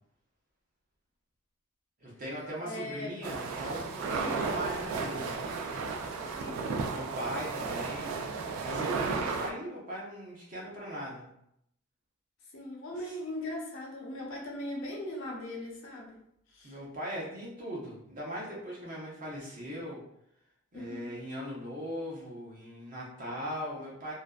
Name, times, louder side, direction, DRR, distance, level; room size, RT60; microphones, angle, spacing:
voice 1, 2.0-5.4 6.9-8.2 8.6-11.3 13.0-13.2 16.6-20.0 20.7-24.1, equal, 40° right, -4 dB, 0.7 m, -39 dB
voice 2, 2.6-3.1 4.1-4.5 6.4-6.7 9.2-9.4 12.5-16.2 16.5-16.7 20.7-21.1, left 1 dB, 65° left, -1 dB, 0.6 m, -39 dB
sound 1, 3.2-9.5, right 4 dB, 85° right, 0.3 m, -34 dB
2.5 x 2.1 x 2.3 m, 0.75 s
head